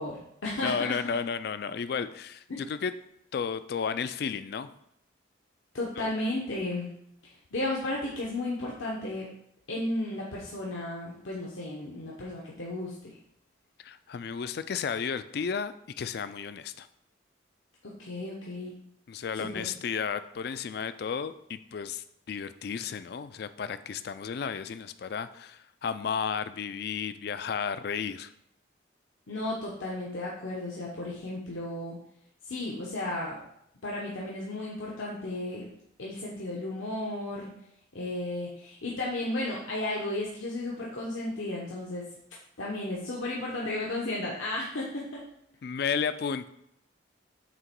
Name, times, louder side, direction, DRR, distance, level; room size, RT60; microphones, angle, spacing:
voice 1, 0.0-0.8 2.5-2.6 5.7-6.9 7.2-9.3 9.7-13.1 17.8-18.7 19.3-19.7 29.3-32.0 32.4-33.4 33.8-35.6 36.0-37.5 37.9-42.1 42.6-45.2, left 2 dB, 80° left, -4 dB, 1.0 m, -34 dB
voice 2, 0.6-2.9 3.3-4.7 6.0-6.1 13.8-16.9 19.1-28.3 45.6-46.5, left 6 dB, 55° left, 13 dB, 0.3 m, -33 dB
7.5 x 3.0 x 4.4 m, 0.75 s
head